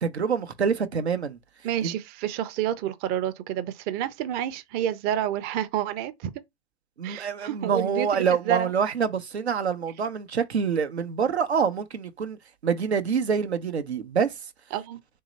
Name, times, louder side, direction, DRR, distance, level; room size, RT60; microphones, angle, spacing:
voice 1, 0.0-1.4 1.8-1.9 7.0-12.4 12.6-14.3, right 6 dB, 90° right, 0.7 m, -26 dB
voice 2, 1.6-6.3 7.0-8.7 14.7-15.0, right 10 dB, 30° right, 0.5 m, -29 dB
3.2 x 2.8 x 3.9 m
hypercardioid pair, 110°, 32 cm